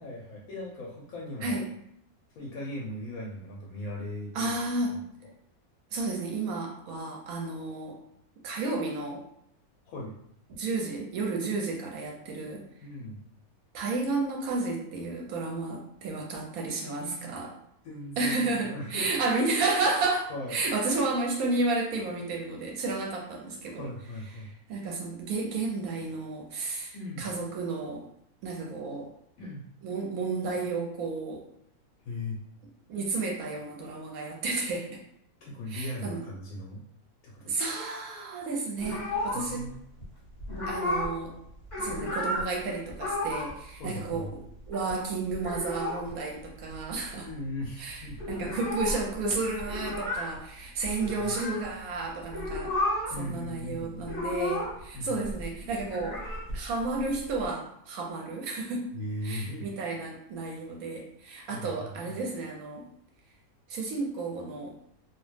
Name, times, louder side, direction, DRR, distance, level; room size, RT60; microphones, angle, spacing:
voice 1, 0.0-1.6 2.3-4.5 4.9-5.0 9.9-10.2 12.8-13.2 17.0-17.3 17.8-19.1 20.3-20.6 23.7-24.5 26.9-27.3 29.4-29.6 32.0-32.4 35.4-36.8 37.2-37.6 39.3-39.7 43.8-44.3 47.2-48.2 50.8-51.4 53.1-54.1 54.9-55.3 58.9-59.7 61.4-61.7 62.0-62.2, left 1 dB, 75° left, -3 dB, 1.0 m, -38 dB
voice 2, 4.3-5.0 5.9-8.0 8.4-9.2 10.5-12.6 13.7-17.5 18.2-23.9 24.7-28.0 28.4-29.1 29.8-31.4 32.9-35.0 35.7-36.2 37.5-39.7 40.7-41.3 41.8-47.3 47.8-52.7 53.2-56.2 56.5-58.9 59.2-62.9 63.7-64.7, right 3 dB, 75° right, 0 dB, 1.1 m, -32 dB
sound 1, 38.8-39.7 40.0-40.1 40.4-41.2 41.5-42.5 42.9-43.6 43.8-43.9 44.1-44.9 45.3-46.1 46.4-46.5 46.7-47.3 47.6-47.7 47.9-51.7 52.2-53.2 53.5-54.9 55.2-57.4, left 1 dB, 40° left, 1.2 m, -33 dB
2.6 x 2.1 x 3.2 m, 0.74 s
omnidirectional pair, 1.6 m